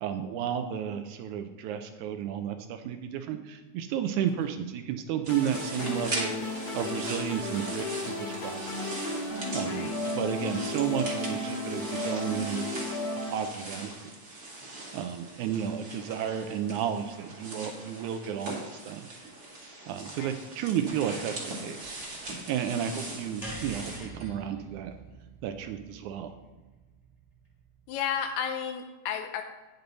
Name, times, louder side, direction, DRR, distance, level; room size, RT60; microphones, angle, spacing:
voice 1, 0.0-6.3 6.7-9.0 9.5-12.8 13.3-13.9 14.9-19.1 19.9-22.0 22.5-24.9 25.4-26.3, right 9 dB, 80° right, 8 dB, 1.9 m, -32 dB
sound 1, 5.2-24.0, right 2 dB, 40° right, 1.4 m, -40 dB
sound 2, 5.3-13.3, left 2 dB, 50° left, 2.2 m, -34 dB
sound 3, 23.4-27.8, right 1 dB, 15° left, 1.6 m, -45 dB
voice 2, 27.9-29.4, left 8 dB, 80° left, 5 dB, 1.7 m, -33 dB
9.2 x 6.7 x 4.0 m, 1.2 s
omnidirectional pair, 3.6 m